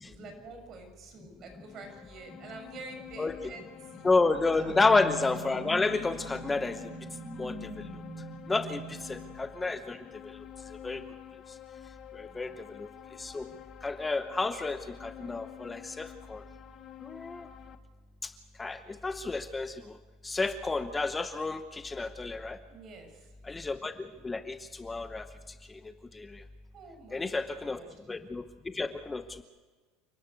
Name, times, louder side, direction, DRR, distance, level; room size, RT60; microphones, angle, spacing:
voice 1, 0.0-4.1 4.4-4.7 12.3-12.6 22.7-23.3 26.7-27.9, right 3 dB, 45° right, 5 dB, 6.1 m, -48 dB
sound 1, 1.4-17.8, left 12 dB, 45° left, 1.3 m, -49 dB
sound 2, 3.5-10.0, equal, 10° right, 6.2 m, -43 dB
voice 2, 4.0-6.8 7.3-7.8 8.5-10.0 10.8-11.0 12.2-12.5 12.8-12.9 13.2-13.5 13.8-16.4 17.0-17.5 18.2-18.3 18.6-19.9 20.2-22.6 23.4-23.9 24.2-25.2 26.1-26.4 27.1-27.8 28.1-28.4 28.7-29.4, left 3 dB, 15° left, 10 dB, 0.9 m, -30 dB
29.0 x 12.0 x 8.2 m, 1.4 s
supercardioid pair, 110°, 0 cm